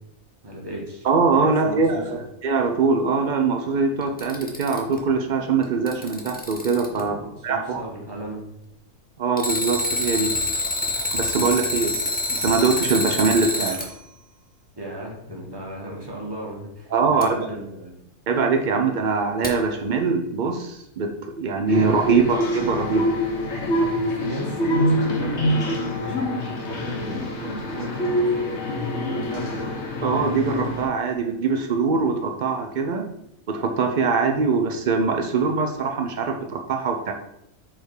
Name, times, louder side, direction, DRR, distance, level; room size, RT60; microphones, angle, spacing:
voice 1, 0.4-1.1 1.6-2.2 7.0-8.4 14.8-17.9 22.1-22.3 23.8-28.6 29.0-29.7, right 1 dB, 15° right, -2 dB, 1.4 m, -35 dB
voice 2, 1.0-7.2 7.4-7.8 9.2-10.3 10.8-12.0 12.4-13.8 16.9-17.4 18.3-23.1 30.0-33.1 33.5-37.1, right 4 dB, 85° right, 4 dB, 0.4 m, -22 dB
Alarm, 4.0-5.0 5.6-7.0 9.4-13.9 17.2-17.3 19.4-19.5, left 1 dB, 10° left, 0.4 m, -26 dB
sound 1, 21.7-30.9, equal, 50° left, 1.3 m, -25 dB
4.9 x 4.3 x 4.7 m, 0.80 s
omnidirectional pair, 1.6 m